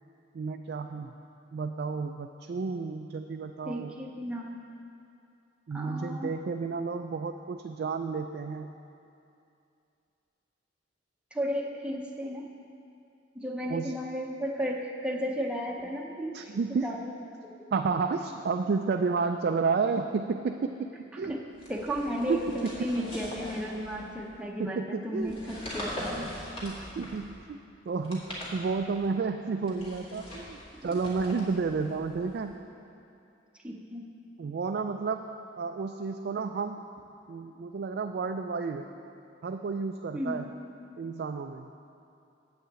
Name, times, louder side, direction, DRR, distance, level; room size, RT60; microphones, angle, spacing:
voice 1, 0.3-1.1 1.5-3.9 5.7-8.7 13.7-13.9 16.3-16.9 17.7-20.7 21.2-21.3 22.3-22.4 24.6-25.3 26.6-27.6 27.9-32.5 34.4-36.8 37.3-38.9 39.4-40.5 41.0-41.7, right 4 dB, 55° right, 5 dB, 0.3 m, -31 dB
voice 2, 3.6-4.6 5.7-6.3 11.3-12.5 13.3-16.4 16.8-17.1 21.1-21.4 21.7-26.3 33.6-34.1 40.1-40.4, equal, 5° right, -1 dB, 0.7 m, -34 dB
sound 1, 21.6-24.3 25.2-27.4 27.9-29.1 29.6-32.5, left 1 dB, 30° left, 2.1 m, -42 dB
8.3 x 5.6 x 7.5 m, 2.6 s
head